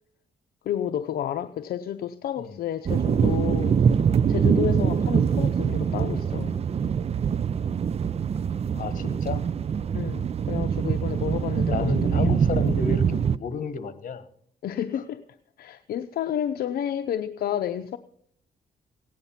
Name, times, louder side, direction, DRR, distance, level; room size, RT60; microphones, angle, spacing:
voice 1, 0.6-3.8 4.3-6.6 9.9-12.4 14.6-15.2 15.6-18.0, left 10 dB, 75° left, 8 dB, 0.6 m, -31 dB
sound 1, 2.8-13.4, right 7 dB, 40° right, 0.5 m, -24 dB
voice 2, 8.7-9.5 11.7-14.3, left 5 dB, 60° left, 12 dB, 1.4 m, -31 dB
16.5 x 9.7 x 5.7 m, 0.64 s
cardioid pair, 85°, 16 cm